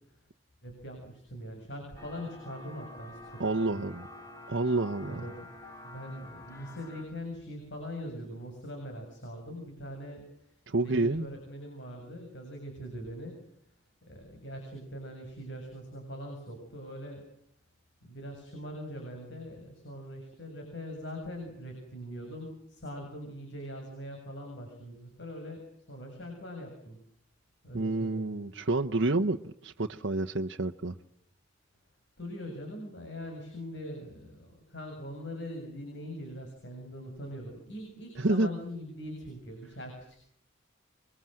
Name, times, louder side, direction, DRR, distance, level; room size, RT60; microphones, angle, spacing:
voice 1, 0.6-3.8 5.0-5.5 5.8-13.4 14.1-17.3 18.0-27.0 27.6-28.3 32.2-40.3, equal, 60° left, 3 dB, 7.2 m, -42 dB
sound 1, 2.0-7.1, left 2 dB, 15° left, 6.5 m, -48 dB
voice 2, 3.4-4.1 4.5-5.2 10.7-11.3 27.7-30.9 38.2-38.5, right 2 dB, 60° right, 4 dB, 1.0 m, -29 dB
27.5 x 23.5 x 7.7 m, 0.69 s
head